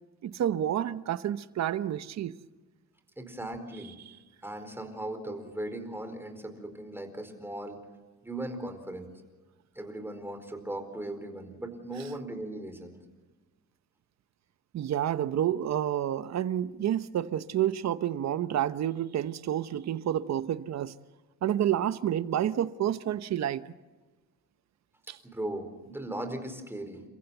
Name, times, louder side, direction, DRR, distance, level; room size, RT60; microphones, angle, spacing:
voice 1, 0.2-2.3 14.7-20.9 21.4-23.7 25.1-25.2, right 11 dB, 60° right, 1.0 m, -29 dB
voice 2, 3.2-3.9 4.4-7.8 8.2-9.1 9.7-13.0 25.2-27.0, right 1 dB, 10° right, 4.6 m, -38 dB
30.0 x 15.0 x 8.2 m
cardioid pair, 90°, 30 cm